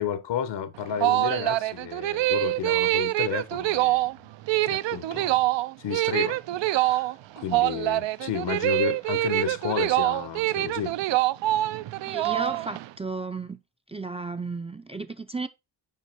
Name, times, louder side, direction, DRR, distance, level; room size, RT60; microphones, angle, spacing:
voice 1, 0.0-4.1 4.6-5.5 5.8-7.1 7.4-10.9, left 8 dB, 75° left, 1.1 m, -32 dB
sound 1, 0.7-12.9, right 17 dB, 85° right, 0.5 m, -25 dB
voice 2, 12.0-13.6 13.9-15.5, right 3 dB, 15° right, 0.4 m, -34 dB
5.6 x 5.1 x 4.4 m
cardioid pair, 110°, 43 cm